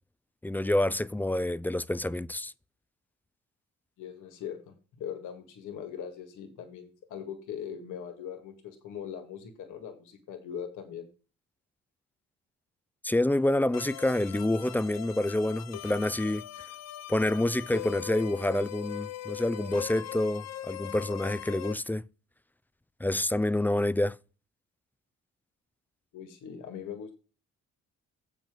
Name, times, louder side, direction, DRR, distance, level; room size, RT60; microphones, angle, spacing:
voice 1, 0.4-2.5 13.0-16.5 17.1-22.1 23.0-24.2, left 1 dB, 5° left, 0.4 m, -28 dB
voice 2, 4.0-11.1 26.1-27.1, left 8 dB, 90° left, 2.0 m, -41 dB
sound 1, 13.7-21.7, left 13 dB, 60° left, 0.7 m, -40 dB
8.0 x 6.3 x 5.1 m
cardioid pair, 90°, 30 cm